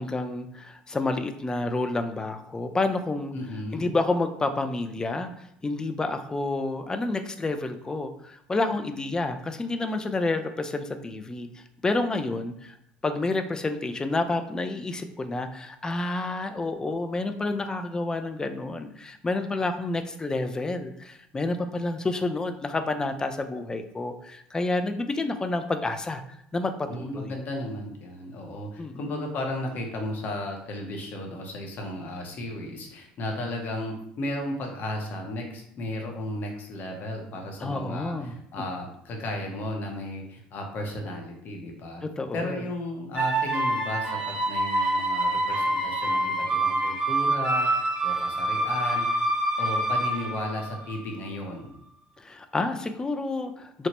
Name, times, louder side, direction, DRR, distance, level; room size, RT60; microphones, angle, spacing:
voice 1, 0.0-3.3 3.7-11.5 11.8-12.8 13.0-26.2 26.5-27.4 28.8-29.0 37.6-38.3 42.0-42.6 52.2-53.9, left 2 dB, 20° left, 8 dB, 0.3 m, -29 dB
voice 2, 3.3-3.9 26.9-42.0 42.3-49.2 49.6-51.8, left 1 dB, 50° left, 2 dB, 0.7 m, -34 dB
sound 1, 43.2-51.1, right 1 dB, 20° right, 0.9 m, -26 dB
3.0 x 2.1 x 2.8 m, 0.73 s
supercardioid pair, 85°, 4 cm